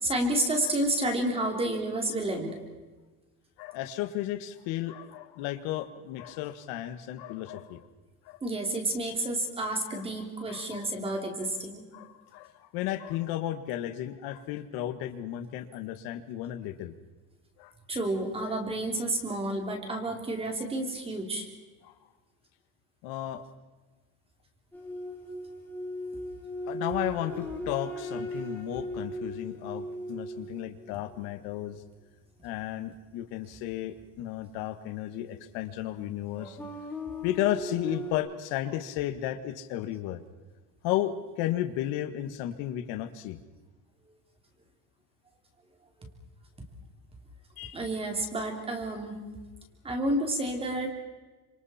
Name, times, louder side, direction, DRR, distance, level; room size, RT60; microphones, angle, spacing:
voice 1, 0.0-2.6 8.4-11.8 17.9-21.5 47.7-49.2 49.8-50.9, right 1 dB, 15° right, 4 dB, 3.1 m, -30 dB
voice 2, 3.6-7.9 8.3-8.4 9.9-10.1 10.5-11.2 11.9-16.9 17.6-17.7 18.4-18.6 21.8-21.9 23.0-23.4 26.7-31.8 32.4-36.6 37.2-40.2 40.8-43.4 47.6-47.8, left 13 dB, 75° left, 9 dB, 1.8 m, -34 dB
sound 1, 24.7-31.5 35.1-35.2 36.3-38.1, equal, 5° left, 3.7 m, -38 dB
29.5 x 26.5 x 4.4 m, 1.3 s
cardioid pair, 180°, 38 cm